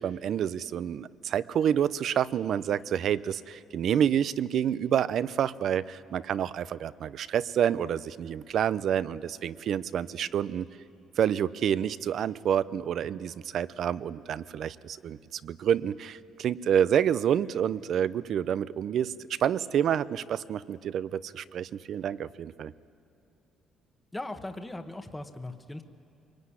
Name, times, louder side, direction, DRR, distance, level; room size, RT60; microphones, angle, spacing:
voice 1, 0.0-10.7 11.2-22.7, right 9 dB, 55° right, 17 dB, 0.6 m, -28 dB
voice 2, 24.1-25.8, left 2 dB, 10° left, 7 dB, 1.2 m, -38 dB
24.5 x 22.0 x 9.8 m, 2.6 s
cardioid pair, 130°, 0 cm